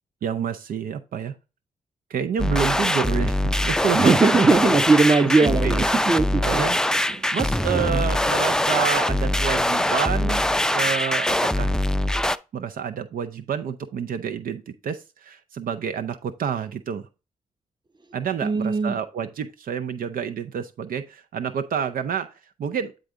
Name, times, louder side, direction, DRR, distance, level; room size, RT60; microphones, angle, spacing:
voice 1, 0.2-1.3 2.1-4.1 4.4-4.7 5.4-5.8 6.4-6.8 7.3-10.5 10.7-11.8 12.5-17.1 18.1-22.3 22.6-22.9, right 7 dB, 70° right, 0.6 m, -28 dB
sound 1, 2.4-12.4, left 1 dB, 5° left, 0.4 m, -23 dB
voice 2, 3.9-6.7 7.2-7.3 7.7-8.0 18.4-19.0, right 4 dB, 30° right, 1.0 m, -20 dB
9.1 x 3.8 x 3.8 m
supercardioid pair, 50°, 15 cm